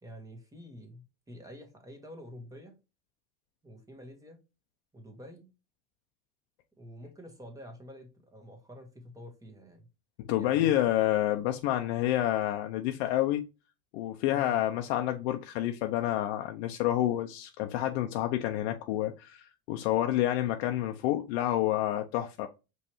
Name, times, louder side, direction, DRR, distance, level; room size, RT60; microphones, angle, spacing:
voice 1, 0.0-2.8 3.6-4.4 4.9-5.5 6.8-9.9 10.3-11.0 14.3-14.6, equal, 10° right, 1.4 m, -48 dB
voice 2, 10.3-13.5 13.9-22.5, left 13 dB, 80° left, 0.6 m, -29 dB
5.3 x 3.2 x 3.0 m
supercardioid pair, 130°, 32 cm